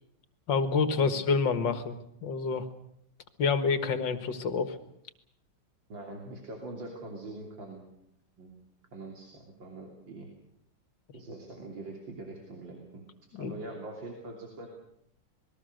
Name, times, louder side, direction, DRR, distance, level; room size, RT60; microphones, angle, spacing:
voice 1, 0.5-2.7 3.4-4.8 13.3-13.6, left 5 dB, 80° left, 10 dB, 2.3 m, -28 dB
voice 2, 5.9-7.8 8.4-8.5 8.9-10.3 11.1-13.0 13.4-14.7, right 2 dB, 85° right, 1 dB, 3.8 m, -43 dB
27.0 x 20.5 x 6.6 m, 0.74 s
omnidirectional pair, 2.0 m